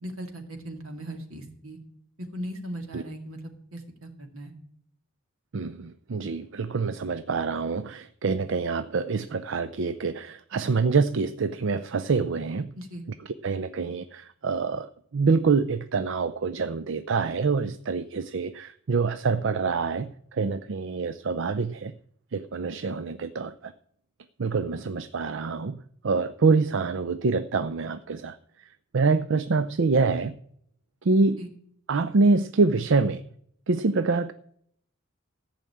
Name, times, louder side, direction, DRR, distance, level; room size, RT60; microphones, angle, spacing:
voice 1, 0.0-1.8 2.3-3.4 3.7-4.5 12.8-13.0 31.4-31.5, equal, 80° right, 5 dB, 2.3 m, -38 dB
voice 2, 5.5-12.7 13.4-21.9 22.3-23.7 24.4-25.8 26.0-28.4 28.9-30.4 31.0-31.4 31.9-33.2 33.7-34.3, right 4 dB, 60° right, 12 dB, 0.5 m, -26 dB
14.5 x 6.0 x 8.5 m, 0.67 s
head